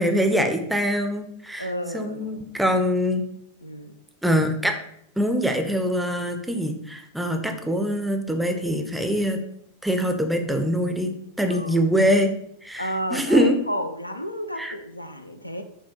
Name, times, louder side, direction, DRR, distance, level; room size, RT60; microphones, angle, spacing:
voice 1, 0.0-3.2 4.2-4.8 5.2-9.4 9.8-11.1 11.4-12.3 12.6-13.6 14.6-14.7, equal, 5° right, 0.5 m, -23 dB
voice 2, 1.6-2.4 3.6-3.9 11.5-11.8 12.8-15.6, equal, 85° left, 0.3 m, -31 dB
5.5 x 2.2 x 3.0 m
figure-of-eight pair, 90°, 0 cm